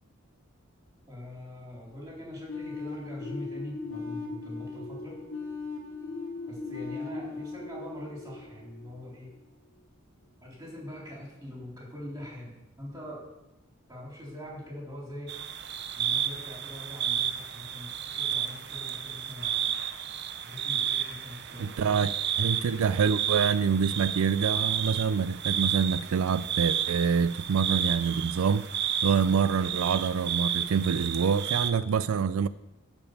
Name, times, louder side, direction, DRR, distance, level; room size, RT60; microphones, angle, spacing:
voice 1, 1.1-5.2 6.5-9.3 10.4-13.2 13.9-15.4 15.9-19.7 20.4-22.0, left 1 dB, 15° right, 3.9 m, -43 dB
sound 1, 2.5-9.2, left 4 dB, 70° left, 2.2 m, -39 dB
sound 2, 15.3-31.7, right 9 dB, 55° right, 0.7 m, -31 dB
voice 2, 21.6-28.7 29.0-32.5, right 6 dB, 90° right, 0.4 m, -26 dB
12.0 x 5.3 x 8.4 m
head